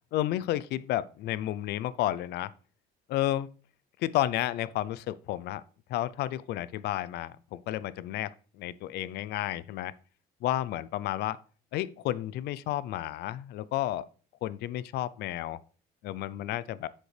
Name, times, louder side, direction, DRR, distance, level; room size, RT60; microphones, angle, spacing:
voice 1, 0.1-2.5 3.1-3.5 4.0-5.6 5.9-9.9 10.4-11.4 11.7-14.1 14.4-15.6 16.0-16.9, left 14 dB, 75° left, 0.5 m, -31 dB
7.5 x 6.5 x 3.3 m
cardioid pair, 110°, 17 cm